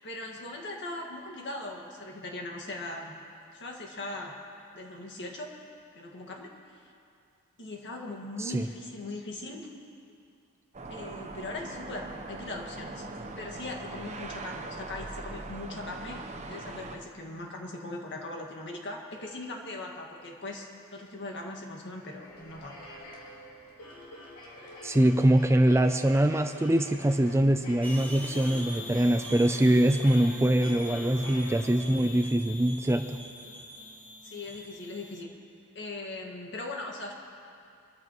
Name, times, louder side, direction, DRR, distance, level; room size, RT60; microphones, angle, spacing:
voice 1, 0.0-3.2 3.5-4.4 4.7-5.5 6.0-6.9 7.6-9.7 10.9-13.1 13.4-22.8 31.8-32.2 34.2-35.3 35.7-37.1, left 2 dB, 55° left, 1 dB, 1.9 m, -40 dB
sound 1, 10.7-17.0, right 2 dB, 30° right, 0.8 m, -41 dB
sound 2, 21.7-32.2, left 1 dB, 75° left, 2.7 m, -46 dB
voice 2, 24.8-33.1, right 1 dB, 10° right, 7 dB, 0.4 m, -23 dB
sound 3, 27.8-35.2, left 1 dB, 10° left, 1.2 m, -43 dB
25.0 x 13.5 x 3.1 m, 2.5 s
head